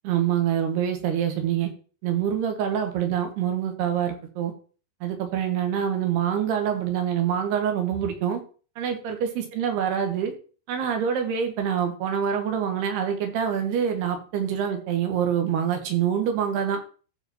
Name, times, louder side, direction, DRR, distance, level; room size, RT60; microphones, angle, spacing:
voice 1, 0.0-1.7 2.0-4.5 5.0-8.4 8.8-10.3 10.7-16.8, right 8 dB, 70° right, 5 dB, 3.4 m, -25 dB
14.5 x 5.1 x 4.3 m, 0.38 s
omnidirectional pair, 5.2 m